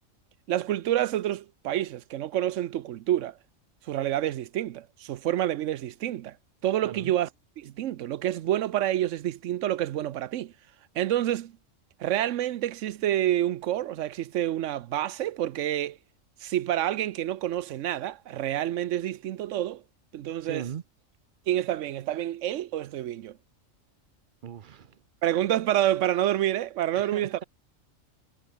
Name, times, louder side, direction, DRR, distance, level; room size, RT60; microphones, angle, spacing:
voice 1, 0.5-3.3 3.9-6.4 6.6-7.3 7.6-10.5 11.0-11.5 12.0-16.0 16.4-19.8 20.1-20.7 21.5-23.4 25.2-27.3, right 12 dB, 70° right, 1.0 m, -28 dB
voice 2, 6.8-7.1 20.4-20.8 24.4-25.0 26.9-27.4, right 9 dB, 50° right, 0.7 m, -38 dB
omnidirectional pair, 1.4 m